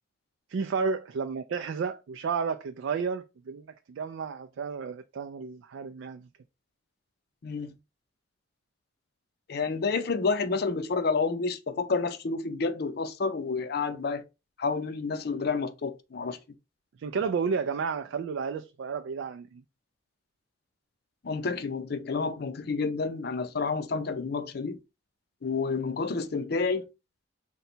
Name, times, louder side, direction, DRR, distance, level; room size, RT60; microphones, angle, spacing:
voice 1, 0.5-6.3 17.0-19.6, right 5 dB, 85° right, 0.4 m, -32 dB
voice 2, 7.4-7.7 9.5-14.2 14.6-16.4 17.2-17.3 21.2-24.8 25.4-26.9, left 4 dB, 55° left, 0.5 m, -29 dB
3.8 x 2.2 x 4.3 m
head